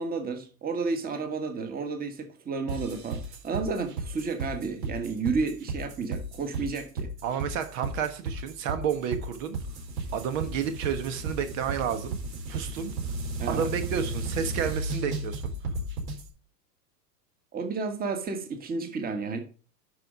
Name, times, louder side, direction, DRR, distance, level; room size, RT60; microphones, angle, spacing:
voice 1, 0.0-7.1 13.4-13.7 17.5-19.4, right 4 dB, 20° right, 1.6 m, -31 dB
sound 1, 2.7-16.2, right 2 dB, 70° right, 4.8 m, -34 dB
voice 2, 7.2-9.6 10.1-12.2 12.5-12.9 13.5-15.4, right 8 dB, 50° right, 1.4 m, -30 dB
11.5 x 4.7 x 5.0 m
hypercardioid pair, 120°, 49 cm